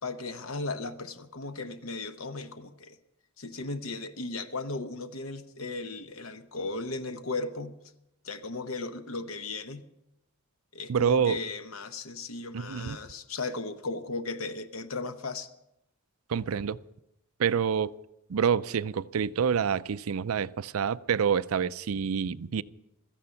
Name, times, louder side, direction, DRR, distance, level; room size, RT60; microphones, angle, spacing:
voice 1, 0.0-3.0 3.4-7.8 8.2-9.9 10.7-15.5, left 3 dB, 70° left, 0.9 m, -36 dB
voice 2, 10.9-11.4 12.5-13.0 16.3-16.8 17.4-17.9 18.3-22.6, right 7 dB, 80° right, 0.5 m, -27 dB
16.5 x 13.5 x 5.7 m
head